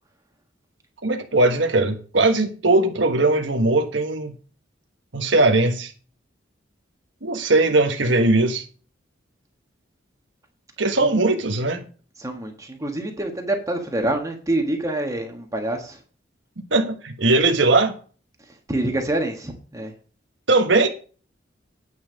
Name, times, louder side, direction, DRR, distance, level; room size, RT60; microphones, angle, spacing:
voice 1, 1.0-4.3 5.1-5.9 7.2-8.7 10.8-11.9 16.7-18.0 20.5-20.9, right 2 dB, 75° right, 1.3 m, -19 dB
voice 2, 12.2-16.0 18.7-19.9, right 1 dB, 20° right, 1.4 m, -26 dB
9.5 x 5.7 x 6.4 m
head